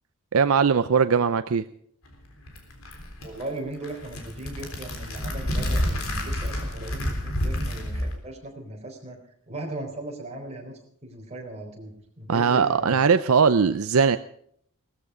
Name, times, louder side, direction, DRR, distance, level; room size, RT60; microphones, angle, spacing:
voice 1, 0.3-1.6 12.3-14.2, right 6 dB, 70° right, 12 dB, 0.5 m, -20 dB
sound 1, 2.1-8.2, equal, 65° left, 3.6 m, -29 dB
voice 2, 3.2-9.2 9.5-10.7 11.0-13.0, right 2 dB, 30° right, 1 dB, 4.0 m, -38 dB
18.0 x 14.0 x 5.0 m, 0.65 s
head